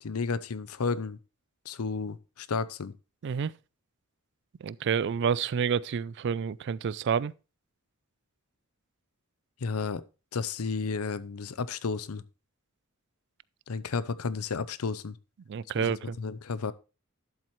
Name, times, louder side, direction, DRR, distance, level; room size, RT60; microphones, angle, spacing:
voice 1, 0.0-1.2 1.6-2.9 9.6-10.0 10.3-12.2 13.7-15.2 15.8-16.7, left 4 dB, 90° left, 0.6 m, -32 dB
voice 2, 4.6-7.3 15.5-16.2, right 7 dB, 55° right, 0.3 m, -29 dB
12.0 x 7.5 x 3.1 m
head